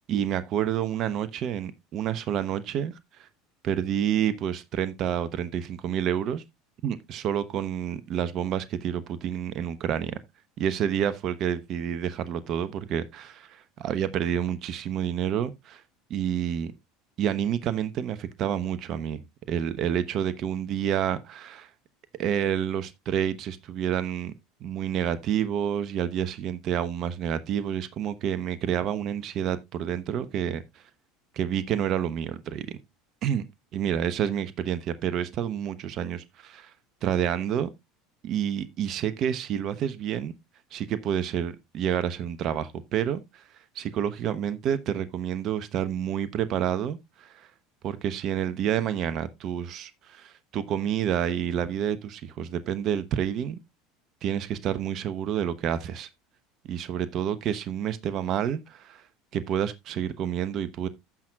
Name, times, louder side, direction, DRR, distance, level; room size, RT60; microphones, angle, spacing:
voice 1, 0.1-2.9 3.2-3.3 3.6-6.4 6.8-10.2 10.6-15.8 16.1-16.7 17.2-19.2 19.5-21.7 22.2-24.3 24.6-30.6 31.4-32.8 33.2-33.4 33.7-36.7 37.0-37.7 38.2-40.3 40.7-43.4 43.7-47.5 47.8-53.6 54.2-56.1 56.6-59.0 59.3-60.9, right 9 dB, 50° right, 1.0 m, -29 dB
14.5 x 6.1 x 2.4 m
hypercardioid pair, 75°, 0 cm